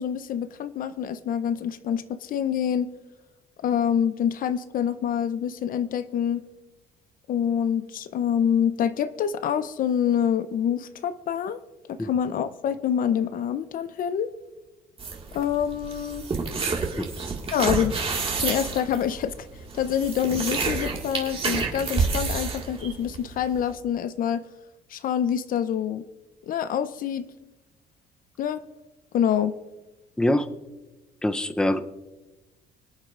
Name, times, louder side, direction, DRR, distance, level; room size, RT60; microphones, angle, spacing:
voice 1, 0.0-2.9 3.6-6.5 7.3-11.6 11.9-14.3 15.3-16.3 17.5-17.9 18.4-19.5 19.7-24.4 24.9-26.0 26.4-27.2 28.4-28.6 29.1-29.6, left 9 dB, 55° left, 13 dB, 0.6 m, -26 dB
sound 1, 15.0-23.7, right 4 dB, 35° right, 1.9 m, -29 dB
voice 2, 31.2-31.8, left 1 dB, 5° left, 9 dB, 0.6 m, -23 dB
26.0 x 8.8 x 2.5 m, 1.1 s
cardioid pair, 110°, 17 cm